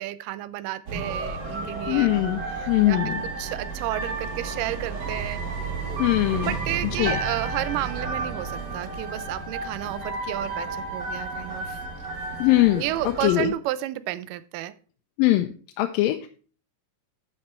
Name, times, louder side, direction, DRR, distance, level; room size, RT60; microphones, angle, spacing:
voice 1, 0.0-2.1 2.5-5.4 6.3-11.8 12.8-14.7, right 15 dB, 80° right, 2.1 m, -32 dB
sound 1, 0.9-13.5, right 3 dB, 50° right, 4.2 m, -32 dB
voice 2, 1.9-2.4 2.7-3.2 6.0-6.6 7.0-7.2 12.4-12.8 13.2-13.5 15.2-15.5 15.8-16.3, left 16 dB, 85° left, 2.3 m, -21 dB
sound 2, 7.0-11.7 11.9-12.3, right 1 dB, 25° right, 0.8 m, -38 dB
10.0 x 5.6 x 4.3 m
omnidirectional pair, 4.0 m